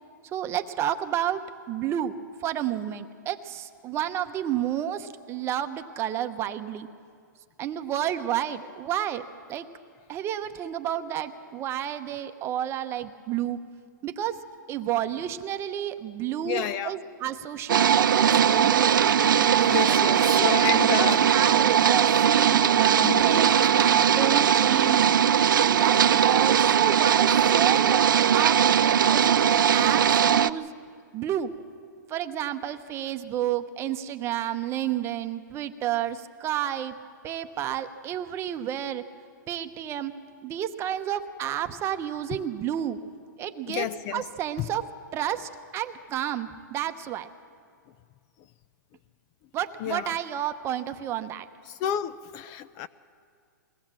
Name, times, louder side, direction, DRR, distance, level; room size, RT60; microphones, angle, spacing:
voice 1, 0.3-6.9 7.6-9.7 10.1-13.6 14.0-14.4 14.7-19.1 19.8-25.1 25.6-30.7 31.1-31.5 32.1-37.0 37.2-39.0 39.5-40.1 40.4-43.0 43.4-44.8 45.1-47.3 49.5-51.5, right 11 dB, 25° right, 0.9 m, -31 dB
voice 2, 16.4-16.9 19.7-21.2 23.0-23.4 43.7-44.2 44.6-44.7 49.8-50.1 51.7-52.9, left 10 dB, 35° left, 0.5 m, -30 dB
sound 1, 17.7-30.5, right 8 dB, 85° right, 0.5 m, -20 dB
22.0 x 17.5 x 7.6 m
hypercardioid pair, 140°, 11 cm